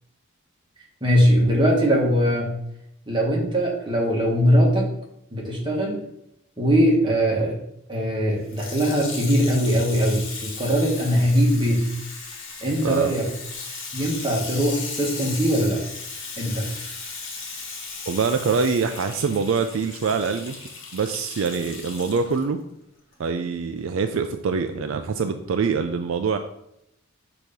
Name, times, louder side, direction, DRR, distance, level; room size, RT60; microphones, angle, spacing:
voice 1, 1.0-2.5 3.1-4.9 5.3-6.0 6.6-7.6 7.9-10.2 10.6-11.8 12.6-13.2 13.9-15.8 16.4-16.7, equal, 20° right, -3 dB, 1.4 m, -21 dB
Water tap faucet / Sink (filling or washing), 8.4-22.4 23.1-23.2, left 4 dB, 60° left, 1.3 m, -36 dB
voice 2, 12.8-13.1 18.1-20.6 20.9-22.6 23.2-26.4, right 5 dB, 65° right, 7 dB, 0.4 m, -24 dB
6.3 x 2.9 x 5.1 m, 0.78 s
head